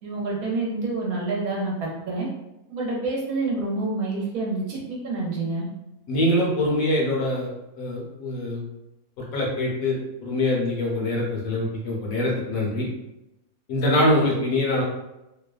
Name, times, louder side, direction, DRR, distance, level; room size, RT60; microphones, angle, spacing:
voice 1, 0.0-2.3 2.7-5.6, right 3 dB, 70° right, -3 dB, 1.1 m, -28 dB
voice 2, 6.1-7.5 7.8-8.6 9.3-10.0 10.2-12.9 13.7-14.8, left 1 dB, 65° left, -3 dB, 1.0 m, -23 dB
2.8 x 2.1 x 2.3 m, 0.93 s
omnidirectional pair, 1.7 m